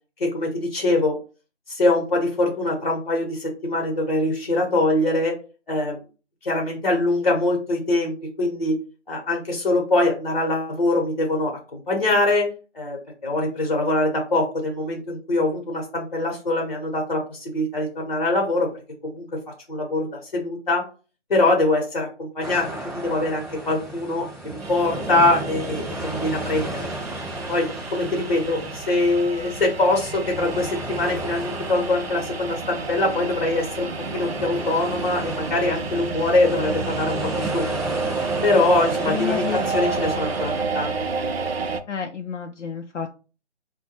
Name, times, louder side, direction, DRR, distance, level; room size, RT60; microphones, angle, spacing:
voice 1, 0.2-1.2 1.7-5.4 5.7-6.0 6.4-8.7 9.1-12.5 12.7-18.7 19.0-19.3 19.7-20.8 21.3-26.9 27.5-37.6 38.4-40.9, left 2 dB, 40° left, 1 dB, 0.9 m, -23 dB
sound 1, 22.4-40.6, right 2 dB, ahead, 0.4 m, -34 dB
sound 2, 24.6-41.8, right 4 dB, 60° right, 0.5 m, -30 dB
voice 2, 39.1-39.6 41.9-43.2, left 7 dB, 80° left, 4 dB, 0.5 m, -30 dB
4.6 x 2.2 x 2.9 m, 0.35 s
figure-of-eight pair, 160°, 36 cm